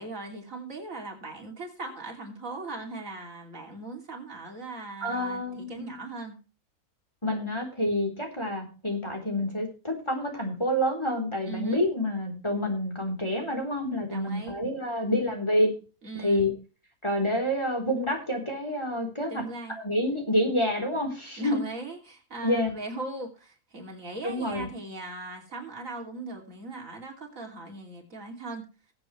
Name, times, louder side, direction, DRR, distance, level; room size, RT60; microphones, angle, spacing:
voice 1, 0.0-6.4 11.4-11.8 14.1-14.6 16.0-16.5 19.3-19.8 21.4-28.7, right 2 dB, 65° right, 1 dB, 3.4 m, -39 dB
voice 2, 5.0-6.0 7.2-15.7 16.2-16.5 17.0-19.4 19.8-21.6 22.4-22.7 24.2-24.7, left 1 dB, 20° left, 2 dB, 3.8 m, -28 dB
21.0 x 8.0 x 3.2 m, 0.34 s
omnidirectional pair, 1.5 m